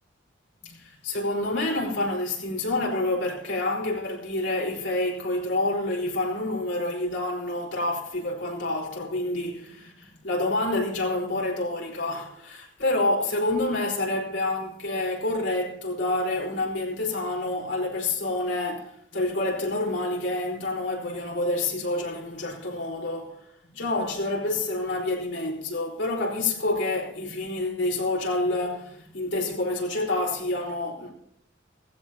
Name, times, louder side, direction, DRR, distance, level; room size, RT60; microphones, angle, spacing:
voice 1, 0.6-23.4 23.7-31.1, left 2 dB, 65° left, 4.7 m, -28 dB
18.0 x 15.5 x 3.0 m
head